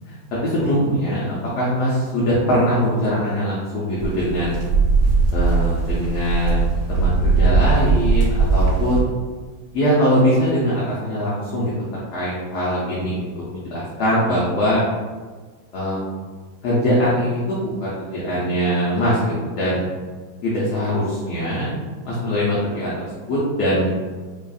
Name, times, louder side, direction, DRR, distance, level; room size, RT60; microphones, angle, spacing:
voice 1, 0.4-4.7 5.3-9.1 9.7-11.7 12.1-14.8 15.7-16.1 16.6-19.9 20.4-21.7 22.0-23.9, equal, 65° left, -7 dB, 1.2 m, -22 dB
sound 1, 4.0-9.0, right 4 dB, 85° right, 1.6 m, -19 dB
5.1 x 2.4 x 2.4 m, 1.4 s
omnidirectional pair, 2.0 m